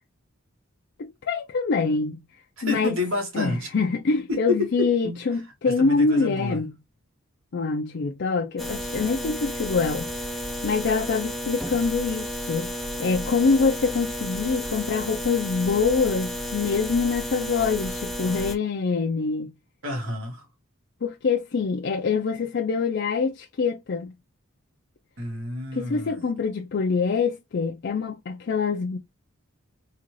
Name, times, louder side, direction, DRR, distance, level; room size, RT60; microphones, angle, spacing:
voice 1, 1.0-2.2 2.6-3.0 3.3-6.7 7.5-10.1 10.6-12.7 13.0-19.5 21.0-24.1 25.7-29.0, left 4 dB, 55° left, 0.4 m, -25 dB
voice 2, 2.6-3.7 4.3-5.2 5.6-6.6 19.8-20.5 25.2-26.2, left 2 dB, 75° right, 1.5 m, -29 dB
sound 1, 8.6-18.6, equal, ahead, 0.4 m, -32 dB
3.8 x 2.4 x 3.0 m
head